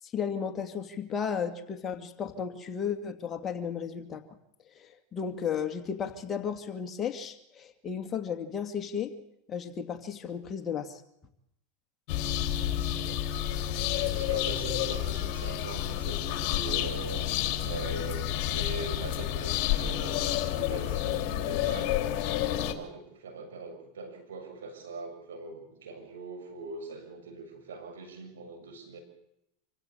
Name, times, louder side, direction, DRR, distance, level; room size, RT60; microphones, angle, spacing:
voice 1, 0.1-4.2 4.8-9.1 9.5-11.0, left 7 dB, 30° left, 6 dB, 2.5 m, -34 dB
sound 1, 12.1-22.7, left 12 dB, 55° left, 2.7 m, -30 dB
voice 2, 13.7-29.0, right 3 dB, 85° right, 5 dB, 6.9 m, -42 dB
26.5 x 16.0 x 8.7 m, 0.82 s
hypercardioid pair, 100°, 0 cm